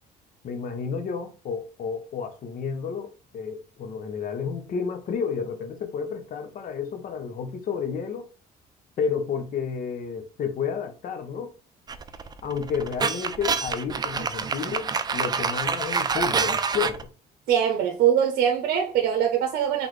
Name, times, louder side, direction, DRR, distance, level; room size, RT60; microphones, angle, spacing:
voice 1, 0.4-8.3 9.0-11.5 12.4-17.1, left 6 dB, 50° left, 0.9 m, -31 dB
sound 1, 11.9-17.0, right 5 dB, 25° right, 0.4 m, -27 dB
voice 2, 17.5-19.9, right 9 dB, 65° right, 0.8 m, -22 dB
4.0 x 3.4 x 3.1 m
cardioid pair, 110°, 17 cm